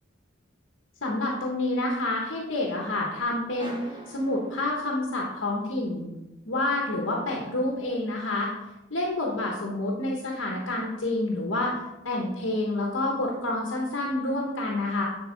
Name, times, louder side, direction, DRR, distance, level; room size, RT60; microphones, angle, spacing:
voice 1, 1.0-3.8 4.1-6.1 6.5-8.5 8.9-11.7 12.0-15.0, left 2 dB, 80° left, -1 dB, 1.1 m, -28 dB
sound 1, 3.5-5.3, equal, 25° right, 1.0 m, -44 dB
10.0 x 4.1 x 3.9 m, 0.98 s
head